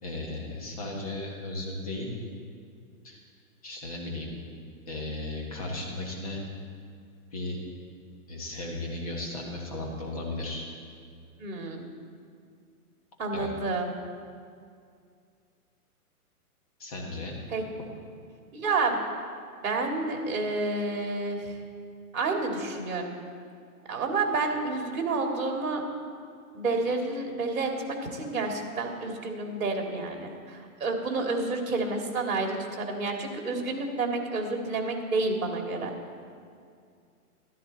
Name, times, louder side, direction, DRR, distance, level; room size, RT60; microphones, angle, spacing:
voice 1, 0.0-2.1 3.0-3.2 3.6-4.3 4.9-6.4 7.3-7.6 8.3-10.7 13.3-13.5 16.8-17.4, left 2 dB, 25° left, -1 dB, 1.4 m, -35 dB
voice 2, 11.4-11.9 13.2-13.9 17.5-17.6 18.5-19.0 19.6-21.6 22.1-23.2 23.9-25.8 26.5-35.9, right 3 dB, 60° right, 2 dB, 2.4 m, -29 dB
13.5 x 13.0 x 4.1 m, 2.3 s
hypercardioid pair, 180°, 45 cm